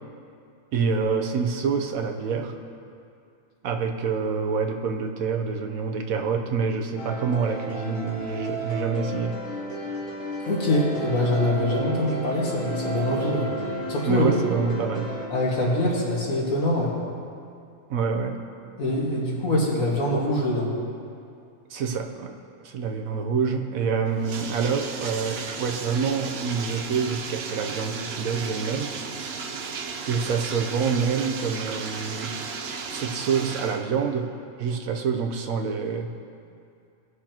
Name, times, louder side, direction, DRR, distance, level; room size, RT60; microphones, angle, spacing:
voice 1, 0.7-2.5 3.6-9.4 14.0-15.1 17.9-18.4 21.7-22.3 22.6-28.9 30.1-32.4 32.9-34.3 34.6-36.1, right 5 dB, 90° right, 4 dB, 1.2 m, -26 dB
sound 1, 7.0-15.3, right 1 dB, 70° left, 1.5 m, -32 dB
voice 2, 10.5-13.5 13.9-14.3 15.3-17.0 18.8-20.7, left 1 dB, 85° left, -4 dB, 2.2 m, -24 dB
Bathtub (filling or washing), 24.1-33.8, right 5 dB, 60° right, 0.8 m, -34 dB
18.0 x 6.4 x 2.9 m, 2.5 s
omnidirectional pair, 1.4 m